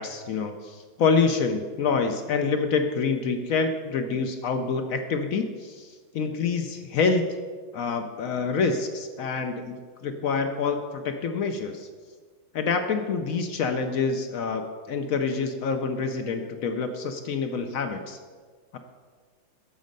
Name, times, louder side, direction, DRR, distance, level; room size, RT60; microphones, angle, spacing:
voice 1, 0.0-5.9 6.1-7.3 7.7-11.9 12.5-18.2 18.7-18.8, left 5 dB, 70° left, 7 dB, 0.8 m, -27 dB
13.5 x 5.3 x 5.2 m, 1.5 s
omnidirectional pair, 2.1 m